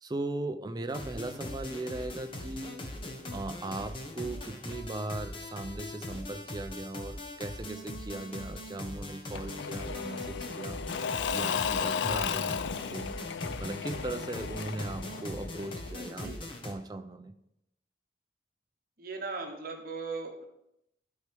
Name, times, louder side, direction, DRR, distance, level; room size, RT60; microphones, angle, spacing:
voice 1, 0.0-2.9 3.3-10.8 11.3-13.1 13.6-17.3, right 2 dB, 20° right, 8 dB, 0.4 m, -38 dB
sound 1, 0.9-16.7, left 1 dB, 30° left, 1.0 m, -41 dB
Engine / Mechanisms / Drill, 9.3-16.0, left 7 dB, 80° left, 0.3 m, -34 dB
voice 2, 19.0-20.5, right 4 dB, 55° right, 3 dB, 1.1 m, -38 dB
11.5 x 4.6 x 3.4 m, 0.82 s
head